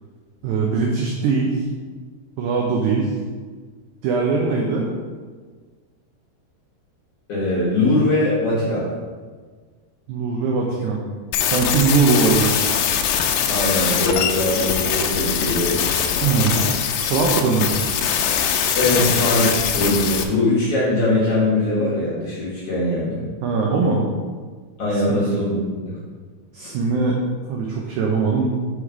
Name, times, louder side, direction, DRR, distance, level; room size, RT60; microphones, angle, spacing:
voice 1, 0.4-1.6 2.4-3.1 4.0-4.9 10.1-11.0 11.5-12.7 16.2-16.6 17.1-17.9 19.0-19.2 23.4-24.0 24.9-25.2 26.5-27.2 27.5-28.5, right 4 dB, 85° right, -1 dB, 1.7 m, -21 dB
voice 2, 7.3-8.9 13.5-15.8 18.8-23.2 24.8-25.9 26.6-26.7, left 1 dB, 60° left, -8 dB, 1.6 m, -21 dB
sound 1, 11.3-20.2, left 8 dB, 85° left, 2.3 m, -22 dB
5.6 x 4.9 x 4.6 m, 1.5 s
omnidirectional pair, 4.3 m